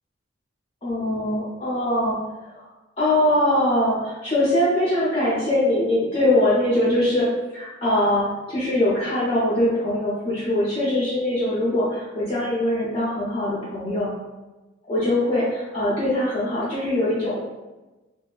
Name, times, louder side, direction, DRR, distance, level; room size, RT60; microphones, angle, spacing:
voice 1, 0.8-2.2 2.5-2.6 3.0-7.3 7.5-14.1 14.8-17.4, left 1 dB, 30° left, -10 dB, 0.5 m, -22 dB
2.7 x 2.2 x 2.3 m, 1.1 s
head